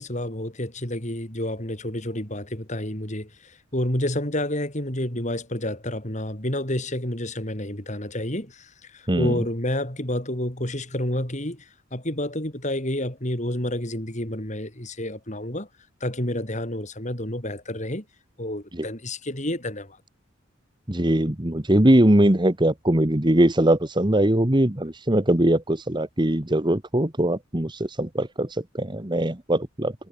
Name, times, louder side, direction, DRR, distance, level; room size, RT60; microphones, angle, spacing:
voice 1, 0.0-15.7 16.0-18.0 18.4-20.0, left 1 dB, 35° left, 5.5 m, -29 dB
voice 2, 20.9-29.9, right 1 dB, 25° right, 1.5 m, -21 dB
head